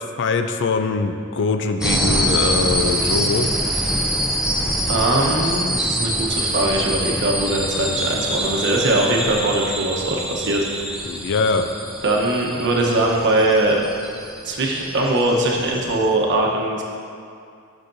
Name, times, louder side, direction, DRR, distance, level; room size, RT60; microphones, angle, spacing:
voice 1, 0.2-3.5 11.0-11.7, left 4 dB, 55° left, 7 dB, 0.4 m, -22 dB
sound 1, 1.8-16.1, right 1 dB, 5° right, 0.6 m, -25 dB
voice 2, 4.9-10.7 12.0-13.8 14.4-16.8, right 2 dB, 55° right, -1 dB, 1.0 m, -21 dB
10.0 x 6.5 x 2.6 m, 2.4 s
head